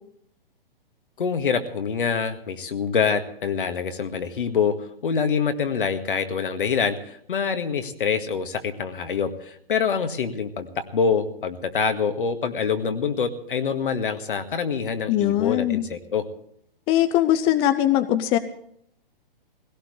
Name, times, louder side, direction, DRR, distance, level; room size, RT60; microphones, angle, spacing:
voice 1, 1.2-4.8 5.0-16.3, left 6 dB, 65° left, 7 dB, 1.9 m, -25 dB
voice 2, 15.1-15.8 16.9-18.4, left 12 dB, 20° left, 11 dB, 0.6 m, -21 dB
19.0 x 17.0 x 3.2 m, 0.68 s
figure-of-eight pair, 120°, 29 cm